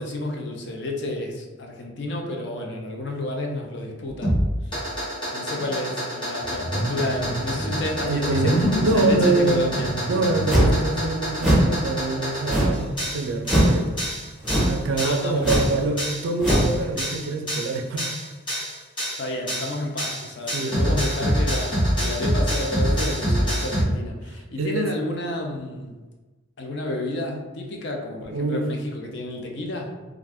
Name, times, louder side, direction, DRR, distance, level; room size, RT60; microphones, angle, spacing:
voice 1, 0.0-4.7 5.3-9.9 15.0-15.6 19.2-26.0 26.6-29.9, left 1 dB, 55° left, 2 dB, 0.5 m, -31 dB
sound 1, 4.2-23.8, equal, 25° left, 0.9 m, -27 dB
sound 2, 6.4-11.5 12.1-12.2 12.6-14.3, equal, 70° left, 1.4 m, -28 dB
voice 2, 8.1-9.8 10.1-14.0 14.7-18.1 20.5-21.3 22.0-22.2 23.3-23.4 24.6-24.9 28.3-28.7, right 3 dB, 80° right, 5 dB, 0.4 m, -25 dB
sound 3, 10.5-10.8 11.4-11.7 12.5-12.9 13.4-13.8 14.4-14.8 15.4-15.7 16.4-16.7, equal, ahead, 0.6 m, -20 dB
2.4 x 2.3 x 3.4 m, 1.2 s
head